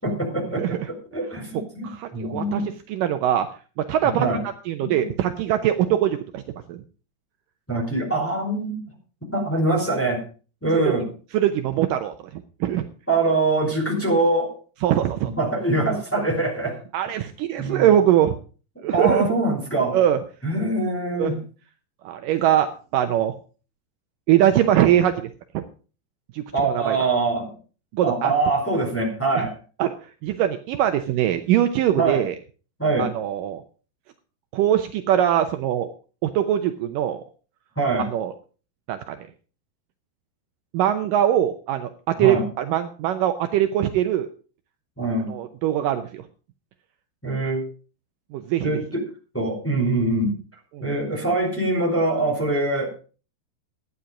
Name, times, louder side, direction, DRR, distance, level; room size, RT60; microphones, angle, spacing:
voice 1, 0.0-2.7 4.0-4.4 4.8-4.9 7.7-8.8 9.3-10.2 10.6-11.1 13.1-14.5 15.4-16.8 17.6-17.9 18.9-20.0 20.4-21.4 26.5-27.5 28.0-29.5 32.0-32.2 32.8-33.1 37.8-38.1 42.2-42.4 45.0-45.4 47.2-47.6 48.6-48.8 49.3-50.4 50.8-53.0, right 2 dB, 5° left, -2 dB, 3.9 m, -23 dB
voice 2, 1.8-2.6 2.9-3.5 3.8-4.3 4.7-6.4 6.7-6.8 11.3-12.9 14.8-15.3 16.9-18.4 18.8-19.3 19.9-20.2 21.2-21.3 22.0-23.3 24.3-25.6 26.3-27.0 27.9-28.3 29.3-29.5 29.8-30.0 30.2-32.4 33.0-33.6 34.5-35.9 36.2-37.2 38.0-38.3 38.9-39.2 40.7-44.3 45.3-46.2 48.3-48.7 50.7-50.9, right 11 dB, 85° right, 8 dB, 1.9 m, -22 dB
14.5 x 9.8 x 5.0 m, 0.37 s
omnidirectional pair, 4.9 m